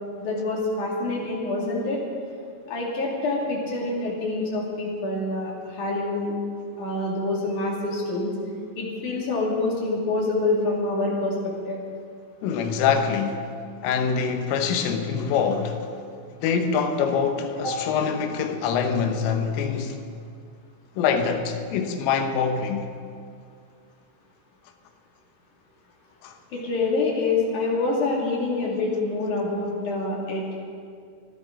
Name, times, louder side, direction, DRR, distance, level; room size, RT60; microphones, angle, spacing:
voice 1, 0.2-2.0 2.7-6.3 6.8-8.3 8.8-11.8 17.6-17.8 26.5-30.6, left 2 dB, 50° left, 3.0 m, -26 dB
voice 2, 12.4-13.5 13.8-15.9 16.4-20.0 21.0-22.9 26.2-26.3, left 6 dB, 80° left, 3.5 m, -24 dB
25.0 x 12.0 x 3.7 m
omnidirectional pair, 5.7 m